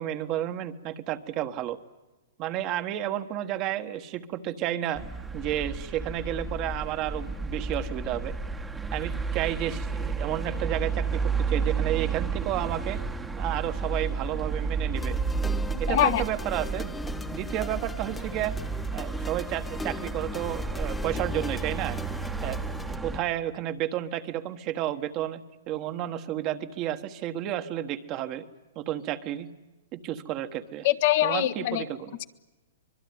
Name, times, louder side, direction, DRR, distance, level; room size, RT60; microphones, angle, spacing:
voice 1, 0.0-1.8 2.4-5.0 5.3-8.3 8.9-13.0 13.4-15.2 15.8-16.9 17.3-18.5 18.9-22.0 22.4-28.4 28.7-29.5 29.9-30.9 31.2-32.2, right 12 dB, 30° right, 9 dB, 1.4 m, -31 dB
sound 1, 5.0-23.2, right 4 dB, 10° right, 1.3 m, -32 dB
sound 2, 14.9-23.0, left 2 dB, 10° left, 1.0 m, -40 dB
voice 2, 15.9-16.2 30.8-31.9, left 13 dB, 50° left, 9 dB, 1.5 m, -23 dB
25.0 x 21.5 x 9.5 m, 1.1 s
hypercardioid pair, 145°, 0 cm